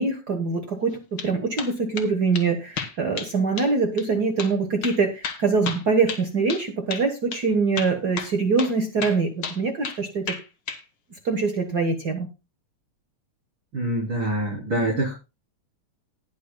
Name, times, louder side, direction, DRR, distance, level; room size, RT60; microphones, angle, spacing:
voice 1, 0.0-10.2 11.2-12.3, right 4 dB, 55° right, 5 dB, 1.1 m, -24 dB
sound 1, 0.9-1.3 1.6-2.1 2.3-2.5 2.8-3.3 3.6-3.7 4.0-4.1 4.4-4.5 4.8-6.6 6.9-7.1 7.3-7.4 7.8-8.7 9.0-10.0 10.3-10.8, left 6 dB, 50° left, 1.4 m, -32 dB
voice 2, 13.7-15.1, right 1 dB, 35° right, -6 dB, 4.1 m, -25 dB
19.5 x 6.5 x 2.2 m, 0.28 s
omnidirectional pair, 3.5 m